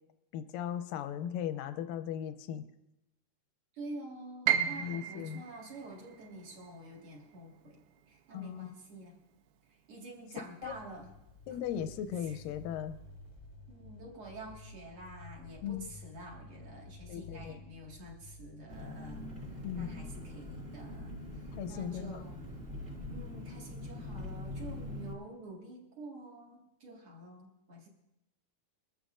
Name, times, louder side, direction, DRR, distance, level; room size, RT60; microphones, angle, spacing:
voice 1, 0.3-2.6 4.5-5.4 8.3-8.8 10.6-10.7 11.5-13.0 15.6-15.9 17.1-17.6 19.6-20.0 21.5-22.3, left 9 dB, 80° left, 9 dB, 2.2 m, -38 dB
voice 2, 3.7-9.2 9.7-11.1 12.2-12.4 13.7-19.2 19.5-22.4 23.1-27.9, right 2 dB, 45° right, -1 dB, 2.3 m, -48 dB
Piano, 4.5-10.4 10.7-11.9 12.3-12.4 13.1-13.4, right 10 dB, 80° right, 2.6 m, -37 dB
sound 1, 10.6-19.0, left 2 dB, 55° left, 0.7 m, -52 dB
Engine, 18.7-25.1, left 1 dB, 25° right, 2.1 m, -43 dB
23.0 x 13.5 x 2.5 m, 0.91 s
omnidirectional pair, 4.3 m